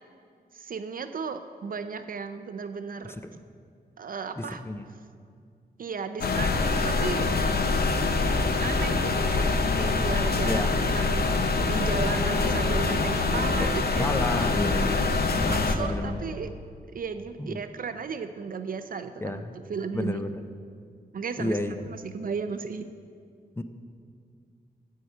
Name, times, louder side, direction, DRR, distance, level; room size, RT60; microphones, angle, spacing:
voice 1, 0.5-3.2 4.0-4.6 5.8-7.3 8.1-8.3 8.6-11.3 11.6-14.1 15.5-16.5 16.9-20.2 21.1-22.9, right 5 dB, 55° right, 9 dB, 0.4 m, -35 dB
voice 2, 4.4-4.8 10.4-10.7 13.6-15.1 15.3-16.4 17.4-17.6 19.2-19.6 19.9-20.5 21.4-21.8 23.6-23.7, left 1 dB, 15° left, 8 dB, 0.5 m, -31 dB
sound 1, 6.2-15.7, left 3 dB, 70° left, 0.7 m, -25 dB
12.0 x 4.7 x 8.2 m, 2.2 s
wide cardioid pair, 165°, 17 cm